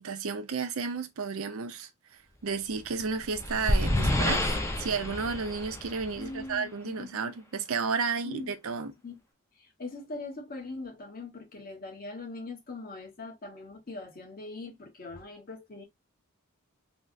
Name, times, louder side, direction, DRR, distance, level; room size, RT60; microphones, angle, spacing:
voice 1, 0.0-1.9 2.4-4.4 4.8-8.9, right 5 dB, 70° right, 0.5 m, -32 dB
sound 1, 2.9-6.5, left 1 dB, 15° left, 0.5 m, -29 dB
voice 2, 6.2-7.4 8.2-8.5 9.0-9.2 9.6-15.8, left 2 dB, 45° left, 1.0 m, -41 dB
3.4 x 2.1 x 2.6 m
head